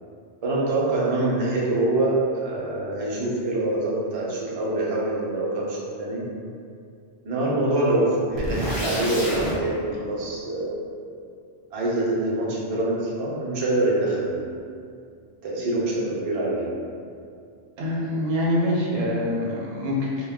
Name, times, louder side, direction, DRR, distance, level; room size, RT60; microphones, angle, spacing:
voice 1, 0.4-6.2 7.2-10.7 11.7-14.6 15.4-16.9, right 2 dB, 50° right, -5 dB, 0.4 m, -25 dB
sound 1, 8.4-9.6, equal, 60° left, 0.7 m, -29 dB
voice 2, 17.8-20.3, left 1 dB, 80° right, -4 dB, 0.9 m, -25 dB
2.2 x 2.1 x 3.5 m, 2.4 s
omnidirectional pair, 1.1 m